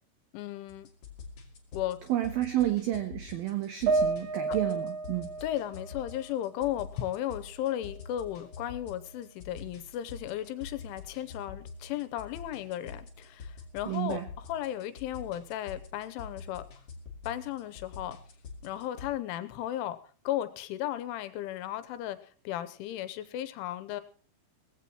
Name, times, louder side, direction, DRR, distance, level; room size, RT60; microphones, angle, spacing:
voice 1, 0.3-0.9 1.7-2.0 4.5-4.6 5.4-16.6 17.3-18.2 18.6-20.0 20.2-22.2 22.4-24.0, left 12 dB, 85° left, 12 dB, 3.3 m, -35 dB
sound 1, 0.7-19.1, left 4 dB, 40° left, 2.4 m, -47 dB
voice 2, 2.1-5.3 13.9-14.2, right 14 dB, 85° right, 8 dB, 2.1 m, -30 dB
sound 2, 3.9-7.3 7.7-8.7, right 3 dB, 60° right, 2.3 m, -33 dB
18.5 x 15.5 x 3.0 m, 0.40 s
omnidirectional pair, 5.6 m